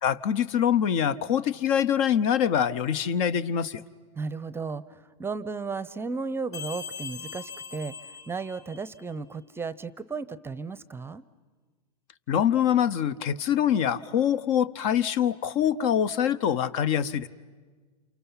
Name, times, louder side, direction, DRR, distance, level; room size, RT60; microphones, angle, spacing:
voice 1, 0.0-3.8 12.3-17.3, left 9 dB, 55° left, 16 dB, 0.9 m, -24 dB
voice 2, 4.2-11.2, right 4 dB, 10° right, 17 dB, 0.7 m, -34 dB
sound 1, 6.5-9.1, left 6 dB, 30° left, 5.0 m, -41 dB
30.0 x 28.0 x 5.7 m, 1.5 s
hypercardioid pair, 110°, 20 cm